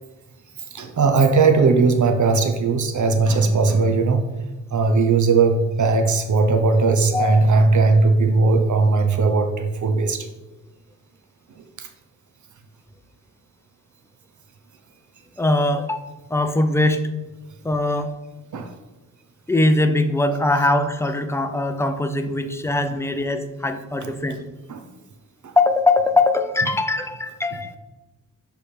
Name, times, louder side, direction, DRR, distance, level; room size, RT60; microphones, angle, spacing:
voice 1, 0.7-4.3 4.7-10.3 11.8-11.9 18.5-18.7 24.7-24.8 25.4-25.5 27.5-27.6, right 4 dB, 65° right, 6 dB, 0.6 m, -18 dB
voice 2, 15.4-17.0 17.6-18.1 19.5-24.4 25.6-27.8, left 2 dB, 10° left, 8 dB, 0.5 m, -21 dB
6.7 x 3.4 x 4.3 m, 1.1 s
wide cardioid pair, 80°, 32 cm